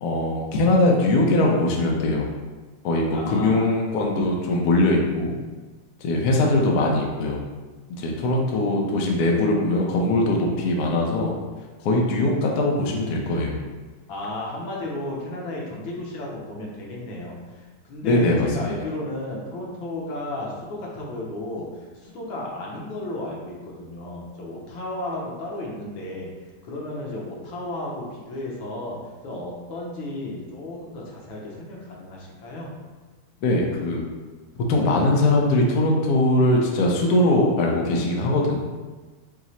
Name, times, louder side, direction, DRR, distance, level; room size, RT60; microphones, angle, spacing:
voice 1, 0.0-2.3 2.8-5.3 6.0-7.4 7.9-11.3 11.8-13.6 18.0-18.7 33.4-34.0 34.7-38.6, left 2 dB, 65° left, -1 dB, 1.0 m, -21 dB
voice 2, 3.1-3.8 14.1-17.4 17.8-26.3 26.6-29.0 29.2-32.7, left 1 dB, 85° left, -3 dB, 1.7 m, -33 dB
4.8 x 2.0 x 4.0 m, 1.3 s
omnidirectional pair, 2.1 m